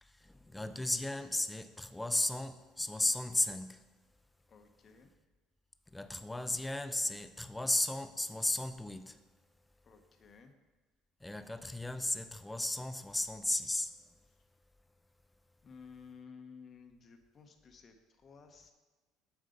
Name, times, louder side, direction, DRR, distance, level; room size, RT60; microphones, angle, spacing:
voice 1, 0.0-3.8 5.9-9.2 11.2-14.1, left 1 dB, 5° left, 0.5 m, -35 dB
voice 2, 4.5-5.1 9.8-10.5 15.6-18.7, left 5 dB, 35° left, 1.0 m, -55 dB
7.8 x 7.1 x 5.2 m
cardioid pair, 125°, 0 cm